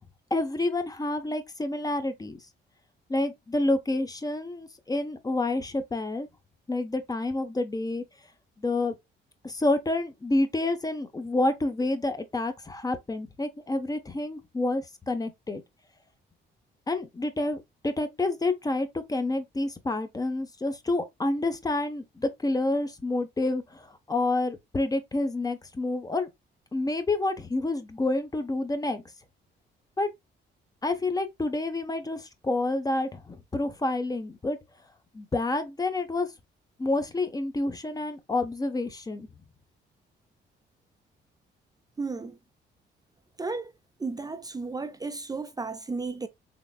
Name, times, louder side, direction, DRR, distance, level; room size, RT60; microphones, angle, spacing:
voice 1, 0.3-2.4 3.1-6.3 6.7-8.0 8.6-9.0 9.4-15.6 16.9-26.3 26.7-29.0 30.0-30.1 30.8-34.6 35.1-36.3 36.8-39.3, left 2 dB, 20° left, 0.8 m, -28 dB
voice 2, 42.0-42.4 43.4-43.7 44.0-46.3, right 3 dB, 20° right, 0.5 m, -33 dB
3.8 x 3.4 x 2.2 m
cardioid pair, 90°, 20 cm